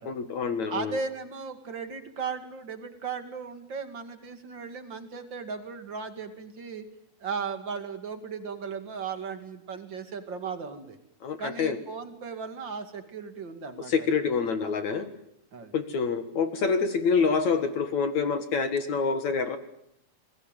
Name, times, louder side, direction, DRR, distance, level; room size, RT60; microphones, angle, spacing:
voice 1, 0.1-1.0 11.2-11.8 13.9-15.1 15.7-19.6, left 5 dB, 55° left, 8 dB, 2.4 m, -26 dB
voice 2, 0.7-6.9 7.2-11.0 11.4-14.1 15.5-15.7, right 5 dB, 35° right, 7 dB, 2.2 m, -36 dB
27.0 x 21.5 x 9.1 m, 0.75 s
omnidirectional pair, 4.8 m